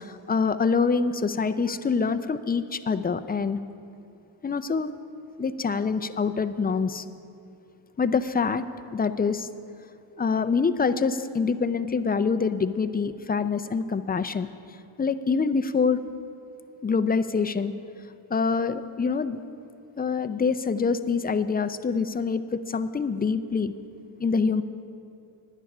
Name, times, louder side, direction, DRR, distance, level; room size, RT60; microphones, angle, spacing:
voice 1, 0.0-3.6 4.4-4.9 5.4-7.0 8.0-8.6 8.9-9.5 10.2-14.5 15.0-16.0 16.8-17.7 18.3-19.4 20.0-23.7 24.2-24.6, left 5 dB, 20° left, 11 dB, 0.4 m, -25 dB
9.9 x 9.8 x 6.0 m, 2.5 s
cardioid pair, 70°, 49 cm